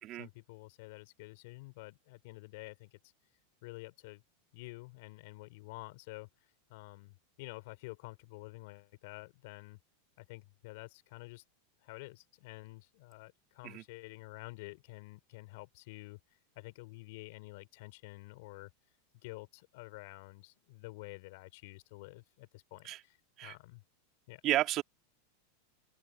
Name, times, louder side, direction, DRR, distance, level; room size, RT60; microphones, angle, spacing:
voice 1, 0.2-3.0 3.6-4.2 4.5-6.3 6.7-9.8 10.2-11.4 11.8-16.2 16.5-18.7 19.2-23.8 24.3-24.4, left 23 dB, 60° left, 5.1 m, -49 dB
voice 2, 24.4-24.8, right 15 dB, 45° right, 3.7 m, -32 dB
open air
hypercardioid pair, 100°, 0 cm